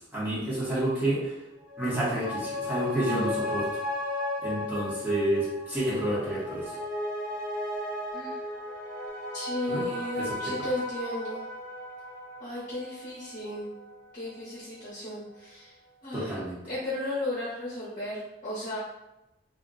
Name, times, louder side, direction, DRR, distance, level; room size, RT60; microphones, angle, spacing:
voice 1, 0.1-1.3 1.8-3.8 4.4-6.7 9.7-9.8 10.2-10.5 16.1-16.6, right 1 dB, 10° right, -9 dB, 0.8 m, -29 dB
sound 1, 1.6-14.5 14.8-14.9, left 1 dB, 55° right, 0.7 m, -35 dB
voice 2, 9.3-11.5 12.4-13.7 14.1-15.7 16.0-16.4 16.6-18.8, left 1 dB, 45° left, -8 dB, 0.8 m, -34 dB
2.4 x 2.1 x 3.7 m, 0.93 s
head